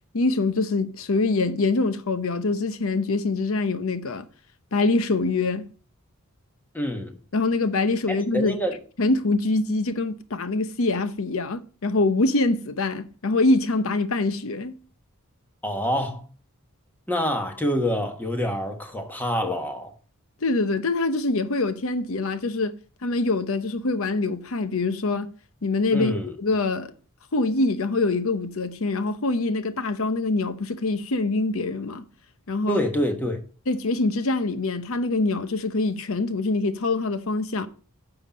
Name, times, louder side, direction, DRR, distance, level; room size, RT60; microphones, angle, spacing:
voice 1, 0.1-4.2 4.7-5.7 7.3-8.6 9.0-14.8 20.4-25.3 25.6-26.9 27.3-32.1 32.5-32.8 33.7-37.7, left 3 dB, 65° left, 0.8 m, -24 dB
voice 2, 6.7-7.1 8.1-8.8 15.6-16.2 17.1-19.9 25.9-26.3 32.7-33.4, equal, 10° left, 1.3 m, -26 dB
9.8 x 5.9 x 5.1 m
head